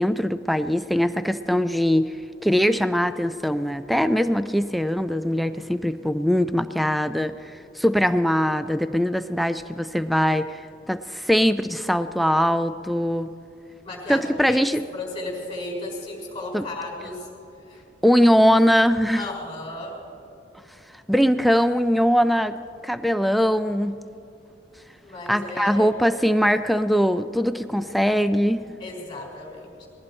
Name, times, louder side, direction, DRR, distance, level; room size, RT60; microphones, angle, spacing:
voice 1, 0.0-2.1 2.4-7.3 7.8-13.3 14.1-14.8 16.5-16.6 18.0-19.3 21.1-22.5 22.8-24.0 25.3-28.6, equal, ahead, 11 dB, 0.3 m, -21 dB
voice 2, 13.8-14.6 14.9-17.3 17.7-17.8 19.2-20.0 25.0-25.9 28.8-29.9, left 2 dB, 25° left, -1 dB, 4.1 m, -34 dB
20.5 x 15.5 x 4.4 m, 2.6 s
head